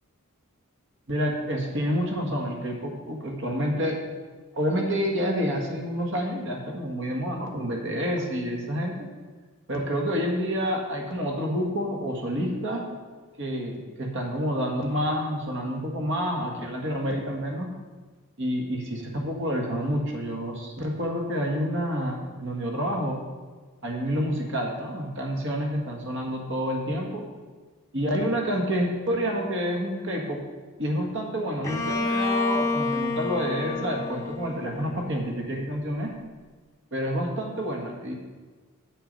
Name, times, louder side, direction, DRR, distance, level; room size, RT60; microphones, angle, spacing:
voice 1, 1.1-4.0 4.5-9.1 9.7-12.9 13.4-17.7 18.4-23.2 23.8-27.3 27.9-30.4 30.8-36.1 36.9-38.1, equal, 55° right, 1 dB, 1.7 m, -28 dB
Bowed string instrument, 31.6-35.4, left 3 dB, 15° left, 0.7 m, -29 dB
8.4 x 7.6 x 5.4 m, 1.4 s
head